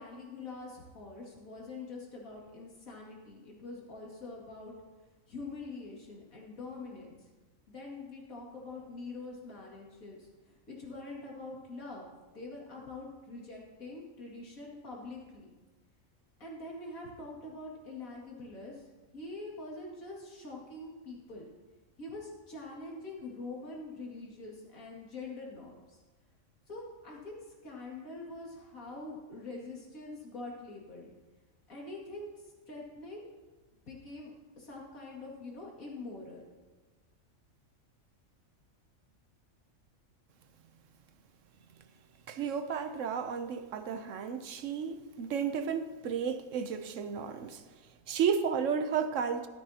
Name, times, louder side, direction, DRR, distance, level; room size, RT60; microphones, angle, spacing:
voice 1, 0.0-4.8 5.3-7.3 7.7-15.5 16.4-18.9 19.1-21.5 22.0-26.0 26.7-31.1 31.7-33.3 33.9-36.4, left 2 dB, 80° left, 2.7 m, -45 dB
voice 2, 42.3-47.6 48.1-49.5, right 7 dB, 70° right, 1.0 m, -33 dB
13.0 x 12.5 x 2.8 m
omnidirectional pair, 1.4 m